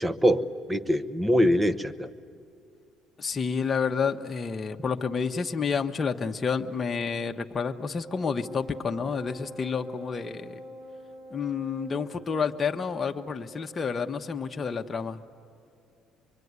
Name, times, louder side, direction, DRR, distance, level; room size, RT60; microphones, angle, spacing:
voice 1, 0.0-2.1, equal, 15° right, 13 dB, 1.0 m, -24 dB
voice 2, 3.2-10.6 11.3-15.2, left 5 dB, 30° left, 4 dB, 1.0 m, -29 dB
Wind instrument woodwind instrument, 8.0-14.7, equal, 55° right, 6.8 m, -46 dB
24.5 x 23.0 x 9.6 m, 2.5 s
supercardioid pair, 95°, 0 cm